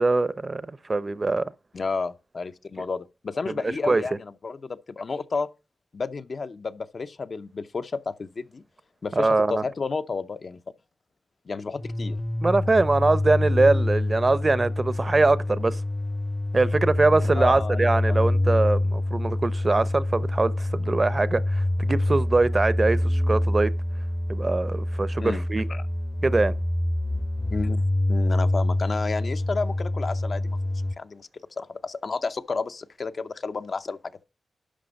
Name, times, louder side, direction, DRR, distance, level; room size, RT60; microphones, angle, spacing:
voice 1, 0.0-1.4 3.8-4.0 9.2-9.6 12.4-15.8 16.5-23.7 24.3-25.7 26.2-26.5, right 3 dB, 35° right, 0.6 m, -23 dB
voice 2, 1.7-5.5 5.9-8.6 9.0-10.6 11.5-12.2 17.4-18.2 25.2-25.4 25.7-25.8 27.5-31.3 31.6-34.0, left 4 dB, 60° left, 0.6 m, -31 dB
sound 1, 11.8-30.9, left 1 dB, 15° left, 0.6 m, -26 dB
11.5 x 5.9 x 5.2 m
wide cardioid pair, 75°, 0 cm